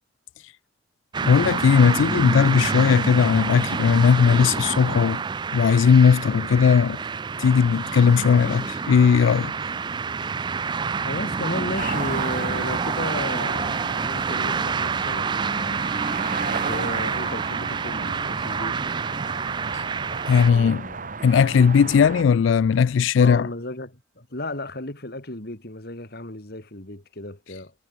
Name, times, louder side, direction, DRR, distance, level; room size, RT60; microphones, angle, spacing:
sound 1, 1.1-20.5, right 5 dB, 25° right, 0.3 m, -28 dB
voice 1, 1.2-5.2 5.5-7.0 7.4-9.5 19.7-19.8 20.3-20.9 21.2-23.5, left 6 dB, 80° left, 0.3 m, -18 dB
voice 2, 11.0-15.8 16.5-19.0 20.4-21.1 23.2-27.7, left 2 dB, 55° left, 3.3 m, -34 dB
sound 2, 11.8-22.2, right 5 dB, 45° right, 1.0 m, -34 dB
sound 3, 22.4-23.2, right 5 dB, 80° right, 4.5 m, -50 dB
head